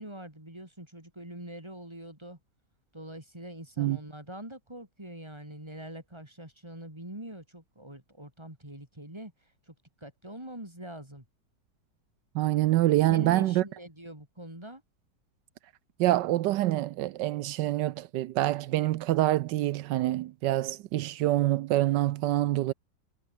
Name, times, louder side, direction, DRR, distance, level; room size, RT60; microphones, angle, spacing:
voice 1, 0.0-2.4 2.9-9.3 9.7-11.3 13.1-14.8, right 1 dB, 15° right, 5.2 m, -43 dB
voice 2, 12.3-13.6 16.0-22.7, right 15 dB, 80° right, 1.3 m, -26 dB
omnidirectional pair, 1.9 m